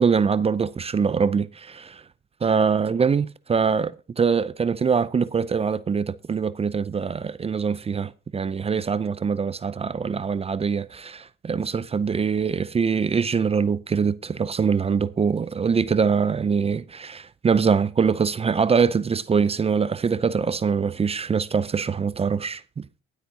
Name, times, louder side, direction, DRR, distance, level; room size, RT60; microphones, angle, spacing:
voice 1, 0.0-2.0 2.4-22.6, right 6 dB, 30° right, 0.5 m, -23 dB
22.5 x 8.3 x 2.8 m
cardioid pair, 90°, 20 cm